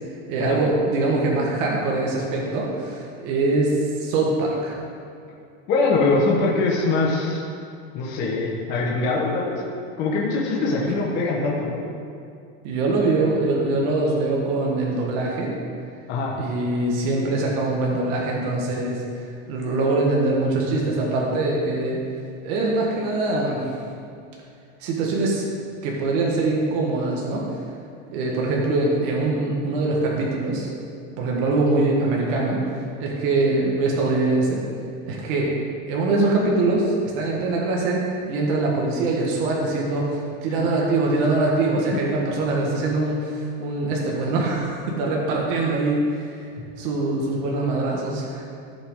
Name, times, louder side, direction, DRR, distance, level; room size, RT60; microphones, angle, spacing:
voice 1, 0.3-4.8 12.6-15.6 16.4-19.0 19.5-22.0 22.4-23.7 24.8-25.5 25.8-27.5 28.1-30.7 31.2-34.6 35.1-35.5 35.9-46.3 46.8-48.4, right 2 dB, 45° right, -2 dB, 1.5 m, -23 dB
voice 2, 5.7-7.4 7.9-9.6 10.0-11.8 16.1-16.3 40.6-40.7, left 3 dB, 30° left, -3 dB, 1.2 m, -22 dB
15.0 x 6.0 x 3.8 m, 2.4 s
supercardioid pair, 180°, 33 cm